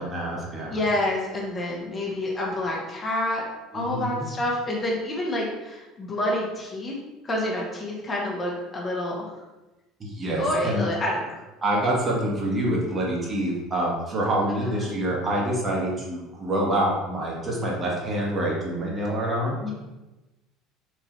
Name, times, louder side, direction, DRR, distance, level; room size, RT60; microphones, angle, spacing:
voice 1, 0.0-0.8 3.7-4.3 10.0-10.8 11.6-19.7, right 1 dB, 30° right, -3 dB, 1.4 m, -26 dB
voice 2, 0.7-3.4 3.7-6.9 7.2-9.4 10.3-11.4 14.5-14.9 19.6-19.7, left 1 dB, 30° left, -3 dB, 1.1 m, -28 dB
4.6 x 2.7 x 3.1 m, 1.0 s
hypercardioid pair, 65°, 0 cm